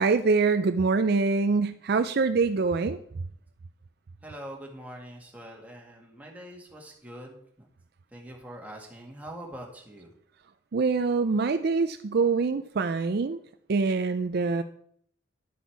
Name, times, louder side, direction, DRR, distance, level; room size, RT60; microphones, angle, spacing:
voice 1, 0.0-3.0 10.7-13.4 13.7-14.6, right 4 dB, 55° right, 10 dB, 0.4 m, -24 dB
voice 2, 4.2-7.7 8.1-10.1, right 1 dB, 10° right, -1 dB, 2.0 m, -43 dB
11.0 x 8.1 x 4.7 m, 0.66 s
head